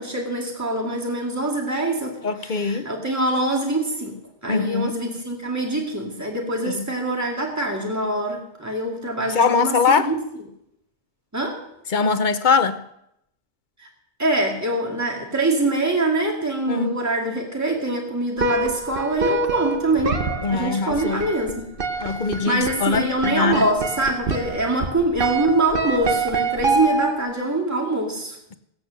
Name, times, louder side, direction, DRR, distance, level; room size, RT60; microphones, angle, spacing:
voice 1, 0.0-4.1 4.4-10.2 11.3-11.6 13.8-13.9 14.2-20.2 20.5-21.6 22.0-22.2 22.5-28.4, right 2 dB, 15° right, 2.4 m, -24 dB
voice 2, 2.2-2.9 4.5-4.9 6.6-6.8 9.3-10.1 11.9-12.8 16.7-17.0 20.4-21.3 22.0-23.7, left 5 dB, 45° left, 0.8 m, -22 dB
sound 1, 18.4-27.4, right 3 dB, 50° right, 1.2 m, -26 dB
17.0 x 8.7 x 6.5 m
omnidirectional pair, 1.2 m